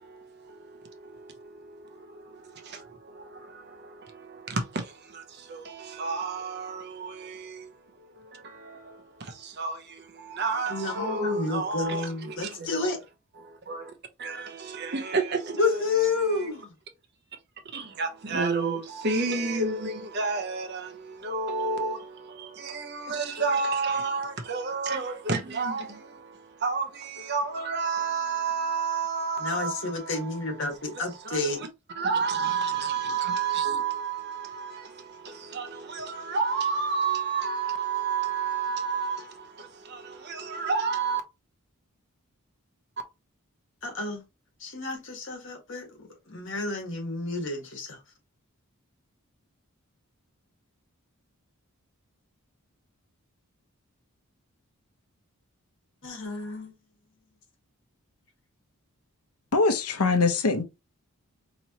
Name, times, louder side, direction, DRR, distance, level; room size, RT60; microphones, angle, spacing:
voice 1, 0.0-13.0 13.4-13.9 14.2-16.5 17.6-30.5 30.9-31.7 31.9-41.2, right 4 dB, 50° right, 0.8 m, -31 dB
voice 2, 10.7-13.0 15.5-16.7 29.4-31.6 43.8-44.2 44.6-48.0 56.0-56.7, left 3 dB, 55° left, 1.4 m, -30 dB
voice 3, 59.5-60.6, left 3 dB, 85° left, 0.7 m, -22 dB
4.3 x 3.0 x 2.8 m
head